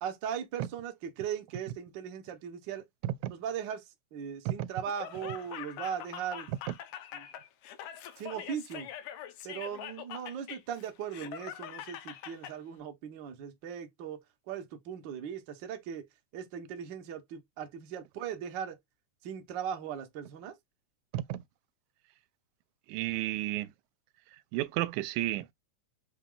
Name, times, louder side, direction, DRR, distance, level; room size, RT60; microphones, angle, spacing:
voice 1, 0.0-2.8 3.3-3.8 4.1-6.5 7.1-7.3 8.2-8.9 9.4-14.2 14.5-16.0 16.3-18.8 19.2-20.5, right 8 dB, 70° right, 1.0 m, -38 dB
Laughter, 4.8-12.5, left 10 dB, 85° left, 2.1 m, -44 dB
voice 2, 22.9-23.7 24.5-25.5, right 15 dB, 90° right, 2.0 m, -32 dB
5.8 x 2.3 x 3.6 m
omnidirectional pair, 3.4 m